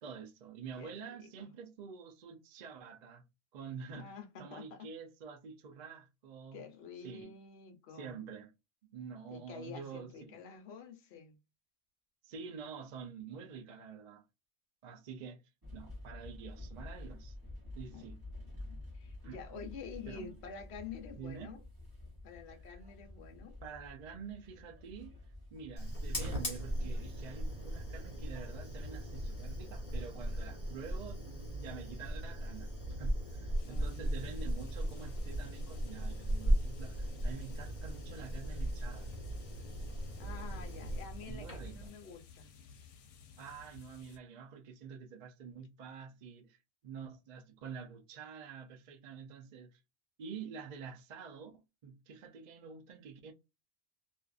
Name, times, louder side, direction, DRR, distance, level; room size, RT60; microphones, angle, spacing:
voice 1, 0.0-3.2 3.5-4.1 4.4-6.6 7.0-7.3 7.9-8.5 8.9-10.4 12.2-14.2 14.8-15.4 15.7-17.4 17.8-18.2 19.2-19.6 20.1-20.3 21.2-21.6 22.5-22.8 23.6-25.2 25.5-32.7 33.0-39.1 41.3-41.9 43.4-46.6 46.8-49.8 50.2-53.3, right 6 dB, 55° right, 0.5 m, -48 dB
voice 2, 0.8-1.5 3.9-4.9 6.5-8.2 9.3-11.4 17.9-18.1 18.6-21.6 22.2-23.6 33.6-34.3 40.2-42.5, left 6 dB, 65° left, 0.9 m, -49 dB
sound 1, 15.6-29.7, left 2 dB, 20° right, 0.9 m, -50 dB
Fire, 25.8-41.9, equal, 35° left, 1.0 m, -37 dB
sound 2, 33.6-44.2, left 5 dB, 90° left, 0.9 m, -55 dB
2.6 x 2.4 x 2.3 m
omnidirectional pair, 1.2 m